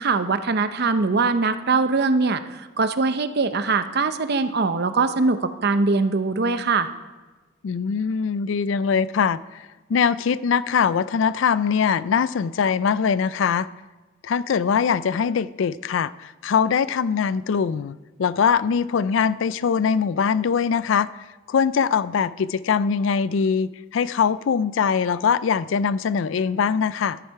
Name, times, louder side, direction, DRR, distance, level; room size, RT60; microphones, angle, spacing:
voice 1, 0.0-6.9, right 4 dB, 55° right, 10 dB, 0.7 m, -22 dB
voice 2, 7.6-13.7 14.2-21.1 21.5-27.2, left 6 dB, 65° left, 18 dB, 0.4 m, -22 dB
13.5 x 10.5 x 4.7 m, 1.2 s
head